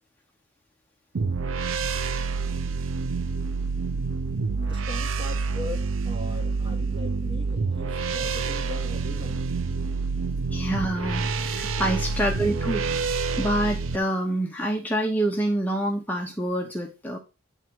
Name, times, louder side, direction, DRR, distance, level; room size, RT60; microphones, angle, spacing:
sound 1, 1.1-14.0, right 4 dB, 75° right, 0.6 m, -28 dB
voice 1, 4.6-9.5 11.6-12.0, left 2 dB, 25° right, 1.4 m, -40 dB
voice 2, 10.5-12.8 13.4-17.2, right 1 dB, 10° left, 0.8 m, -26 dB
9.0 x 3.4 x 6.1 m
head